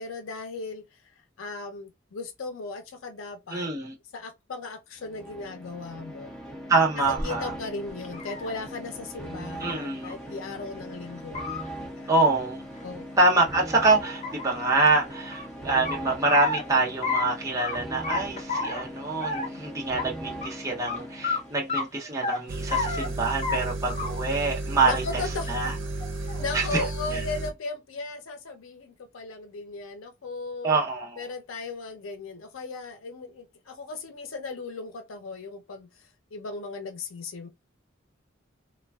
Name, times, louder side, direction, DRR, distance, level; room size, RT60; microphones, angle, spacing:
voice 1, 0.0-3.7 4.1-6.3 7.1-11.5 12.0-12.1 12.8-13.1 24.8-25.7 26.4-30.8 31.2-37.5, left 3 dB, 90° left, 0.5 m, -37 dB
voice 2, 3.5-3.9 6.7-7.5 9.6-10.1 12.1-12.6 13.2-25.7 26.5-26.8 27.1-27.2 30.6-31.2, right 3 dB, 15° right, 0.6 m, -25 dB
sound 1, 5.0-21.8, equal, 5° left, 1.1 m, -40 dB
sound 2, 7.2-7.3 7.9-8.5 9.6-9.7 10.0-10.1 10.5-10.6 11.2-11.6 12.8-13.4 13.8-13.9 14.2-15.5 15.9-16.6 17.0-17.3 17.6-17.8 18.0-18.8 19.2-19.6 20.0-20.1 20.4-20.5 20.9-21.0 21.2-21.4 21.7-22.4 22.7-23.1 23.4-23.6 23.9-24.3 24.7-25.2 26.0-26.5, left 4 dB, 35° left, 0.6 m, -31 dB
sound 3, 22.5-27.5, right 2 dB, 90° right, 0.6 m, -33 dB
3.3 x 2.2 x 2.2 m
head